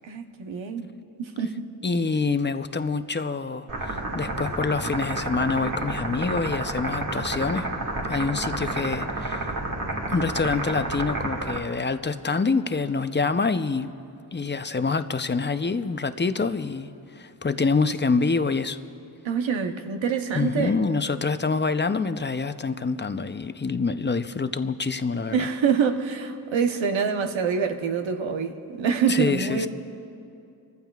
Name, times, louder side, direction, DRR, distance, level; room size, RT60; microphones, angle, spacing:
voice 1, 0.0-0.9 1.2-1.7 19.2-20.8 25.3-29.7, right 6 dB, 80° right, 6 dB, 1.0 m, -26 dB
voice 2, 1.8-7.7 8.1-9.5 10.1-13.9 14.3-18.8 20.3-25.5 29.1-29.7, left 4 dB, 25° left, 10 dB, 0.6 m, -26 dB
sound 1, 3.7-11.6, right 2 dB, 45° right, 2.1 m, -30 dB
28.0 x 15.0 x 2.4 m, 2.6 s
cardioid pair, 60°, 45 cm